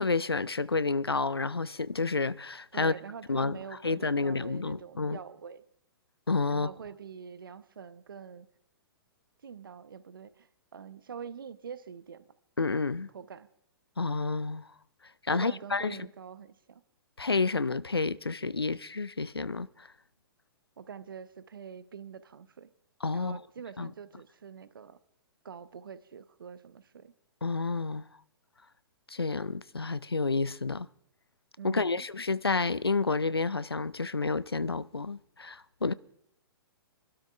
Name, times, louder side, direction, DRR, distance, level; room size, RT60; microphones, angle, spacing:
voice 1, 0.0-2.9 3.3-3.6 3.8-5.2 6.3-6.7 12.6-13.1 14.0-14.7 15.3-16.1 17.2-19.9 23.0-23.4 23.8-23.9 27.4-28.0 29.1-30.9 31.6-35.9, left 3 dB, 85° left, 0.4 m, -30 dB
voice 2, 2.7-5.6 6.5-8.5 9.4-12.3 13.1-13.5 15.3-16.8 20.8-22.7 23.1-25.0 25.4-27.1 31.6-32.0, right 7 dB, 65° right, 0.7 m, -45 dB
28.5 x 12.5 x 2.4 m
figure-of-eight pair, 115°, 13 cm